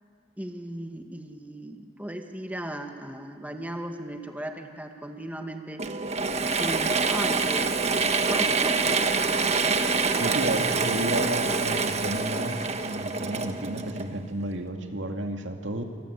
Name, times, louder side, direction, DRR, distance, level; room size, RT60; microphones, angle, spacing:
voice 1, 0.4-5.9 6.4-8.8, right 1 dB, 10° right, 4 dB, 1.9 m, -37 dB
Mechanisms / Drill, 5.8-14.4, right 4 dB, 35° right, 1.4 m, -26 dB
sound 1, 7.4-12.2, right 2 dB, 60° right, 2.3 m, -43 dB
voice 2, 10.2-15.8, right 1 dB, 80° right, 4 dB, 2.3 m, -32 dB
27.5 x 25.0 x 8.2 m, 2.2 s
head